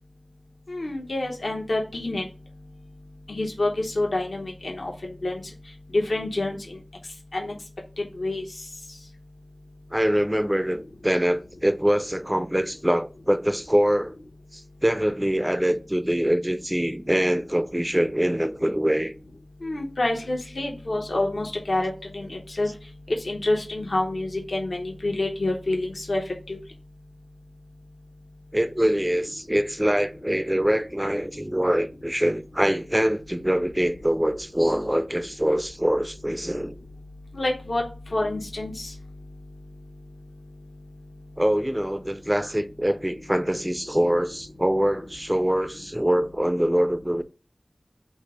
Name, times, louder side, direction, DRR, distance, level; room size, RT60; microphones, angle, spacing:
voice 1, 0.7-2.2 3.3-4.9 5.2-5.4 5.9-6.6 7.3-7.5 8.2-8.4 19.6-22.3 22.6-22.7 23.2-26.2 26.5-26.6 37.3-37.8 38.1-38.9, left 2 dB, 70° left, 0.8 m, -27 dB
voice 2, 9.9-14.1 14.5-19.1 28.5-36.8 41.4-47.2, equal, 10° right, 0.4 m, -24 dB
5.4 x 2.0 x 4.8 m
wide cardioid pair, 50°, 0 cm